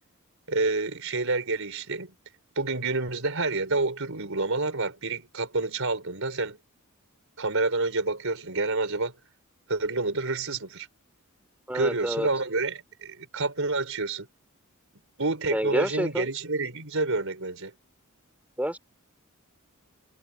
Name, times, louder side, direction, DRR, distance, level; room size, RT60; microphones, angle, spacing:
voice 1, 0.5-2.1 2.6-6.6 7.4-9.1 9.7-10.9 11.7-14.3 15.2-17.7, right 3 dB, 65° right, 5.3 m, -28 dB
voice 2, 11.7-12.3 15.5-16.3 18.6-18.8, equal, 5° right, 3.6 m, -28 dB
head